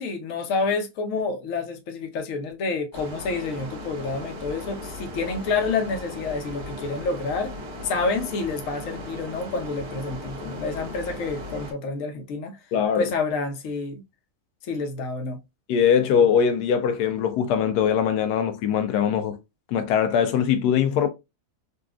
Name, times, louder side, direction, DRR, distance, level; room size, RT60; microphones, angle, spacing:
voice 1, 0.0-7.5 7.8-12.6 13.0-14.0 14.6-15.4, left 4 dB, 60° left, 1.0 m, -28 dB
sound 1, 2.9-11.7, left 1 dB, 60° right, 1.4 m, -37 dB
voice 2, 12.7-13.1 15.7-19.4 19.7-21.1, left 8 dB, 85° left, 1.2 m, -21 dB
4.1 x 2.3 x 2.3 m
omnidirectional pair, 1.7 m